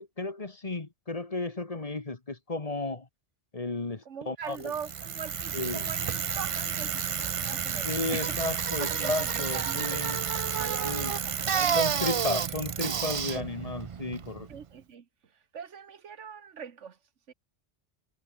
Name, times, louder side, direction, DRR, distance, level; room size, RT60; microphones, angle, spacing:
voice 1, 0.0-3.1 3.5-4.7 5.5-5.9 7.8-10.2 10.8-11.1 11.7-14.5, left 2 dB, 30° left, 1.5 m, -33 dB
voice 2, 4.0-8.4 8.8-10.1 10.6-12.6 13.3-13.5 14.5-17.0 17.3-17.4, right 7 dB, 85° right, 1.6 m, -42 dB
Bicycle, 4.6-14.6, right 7 dB, 50° right, 0.4 m, -31 dB
sound 1, 8.1-13.0, right 1 dB, 15° right, 3.1 m, -53 dB
omnidirectional pair, 1.2 m